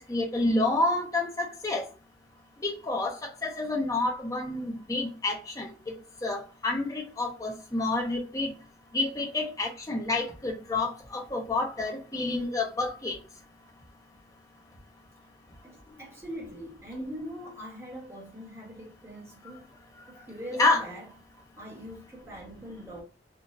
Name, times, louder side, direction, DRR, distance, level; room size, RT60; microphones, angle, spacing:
voice 1, 0.1-1.9 2.6-6.0 6.2-8.5 8.9-13.2 20.6-20.8, left 2 dB, 20° left, 0.7 m, -29 dB
voice 2, 15.6-19.7 20.1-21.1 21.6-23.0, equal, 15° right, 1.4 m, -41 dB
3.8 x 2.4 x 2.6 m
head